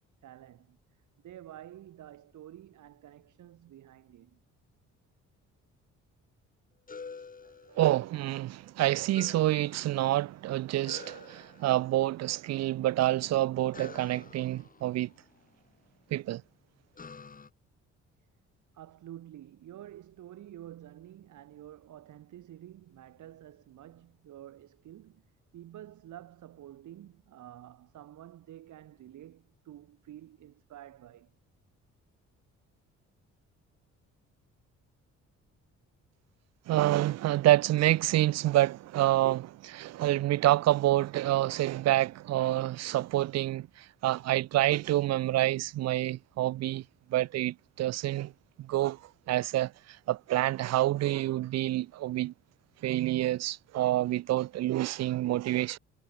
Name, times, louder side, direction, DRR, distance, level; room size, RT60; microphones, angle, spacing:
voice 1, 0.2-0.8 1.2-4.4 18.7-31.3, right 12 dB, 75° right, 4.4 m, -49 dB
sound 1, 6.9-8.3 9.1-10.3 10.9-12.1 13.7-15.8 17.0-17.5, left 5 dB, 30° left, 1.4 m, -49 dB
voice 2, 7.8-15.1 16.1-16.4 36.7-46.8 47.1-48.3 48.6-49.0 49.3-52.3 52.8-55.8, right 15 dB, 60° right, 0.4 m, -27 dB
cardioid pair, 90°, 30 cm